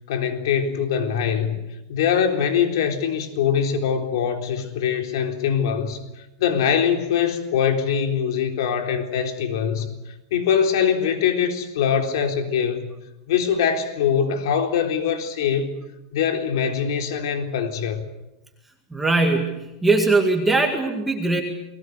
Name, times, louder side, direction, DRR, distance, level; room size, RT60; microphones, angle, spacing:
voice 1, 0.1-1.6 1.9-6.0 6.4-9.9 10.3-12.9 13.3-15.8 16.1-18.0, left 7 dB, 70° left, 3.8 m, -23 dB
voice 2, 18.9-21.4, right 3 dB, 5° right, 2.1 m, -20 dB
30.0 x 21.0 x 6.7 m
supercardioid pair, 175°, 2 cm